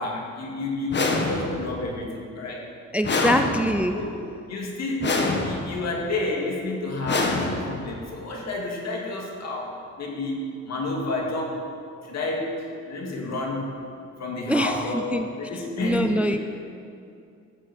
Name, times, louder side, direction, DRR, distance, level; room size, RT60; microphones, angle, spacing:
voice 1, 0.0-2.7 3.1-3.4 3.9-4.2 4.5-11.6 12.0-13.7 14.2-16.3, left 2 dB, 60° left, -1 dB, 2.3 m, -30 dB
sound 1, 0.9-1.8 3.0-4.0 5.0-5.8 7.0-8.0, left 3 dB, 35° left, 1.4 m, -26 dB
voice 2, 2.9-4.0 14.5-15.3 15.8-16.4, equal, 5° right, 7 dB, 0.4 m, -24 dB
14.0 x 7.5 x 4.3 m, 2.5 s
cardioid pair, 90°, 30 cm